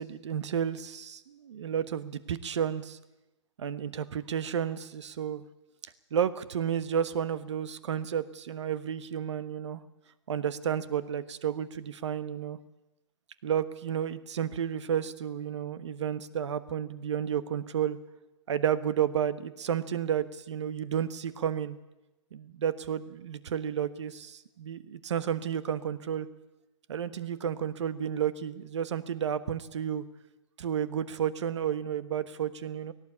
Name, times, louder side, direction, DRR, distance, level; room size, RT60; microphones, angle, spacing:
voice 1, 0.0-3.0 3.6-5.4 6.1-9.8 10.3-12.6 13.4-18.0 18.5-21.8 22.3-26.3 26.9-30.0 30.6-32.9, right 9 dB, 65° right, 14 dB, 1.4 m, -31 dB
17.5 x 17.5 x 8.5 m, 0.97 s
hypercardioid pair, 145°, 16 cm